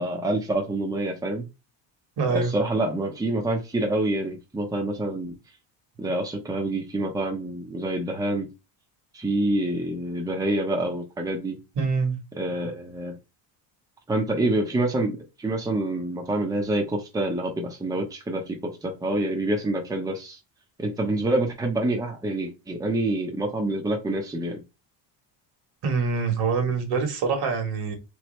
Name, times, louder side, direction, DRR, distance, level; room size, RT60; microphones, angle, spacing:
voice 1, 0.0-1.4 2.3-5.3 6.0-8.5 9.1-11.6 12.3-13.2 14.1-20.4 20.8-24.6, right 1 dB, 10° right, 0.8 m, -27 dB
voice 2, 2.2-2.5 11.8-12.2 25.8-28.0, right 4 dB, 60° right, 1.5 m, -25 dB
3.3 x 3.1 x 3.2 m
cardioid pair, 115°, 43 cm